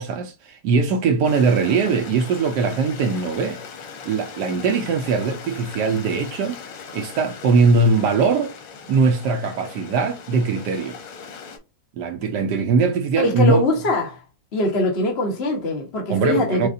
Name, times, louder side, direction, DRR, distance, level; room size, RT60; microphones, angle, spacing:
voice 1, 0.0-3.6 4.1-6.6 6.9-8.6 8.9-11.0 12.0-13.6 16.1-16.7, right 4 dB, 75° right, 1.1 m, -21 dB
Stream, 1.2-11.6, left 6 dB, 80° left, 1.6 m, -39 dB
voice 2, 13.2-14.2 14.5-16.7, left 1 dB, 40° left, 1.1 m, -22 dB
6.3 x 2.4 x 2.6 m
omnidirectional pair, 1.9 m